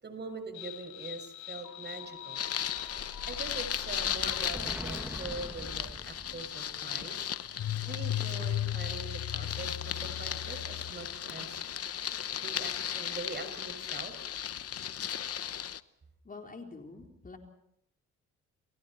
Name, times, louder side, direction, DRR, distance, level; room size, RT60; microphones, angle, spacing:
voice 1, 0.0-2.4 3.3-7.3 7.9-11.6 12.4-14.1, right 3 dB, 35° right, 8 dB, 6.3 m, -43 dB
sound 1, 0.5-11.1, left 11 dB, 75° left, 4.5 m, -39 dB
Explosion, 2.1-6.7, right 1 dB, 5° right, 2.0 m, -45 dB
sound 2, 2.3-15.8, left 9 dB, 50° left, 1.0 m, -36 dB
voice 2, 16.2-17.4, left 3 dB, 30° left, 2 dB, 4.0 m, -46 dB
29.5 x 29.5 x 4.4 m, 0.75 s
cardioid pair, 90°, 30 cm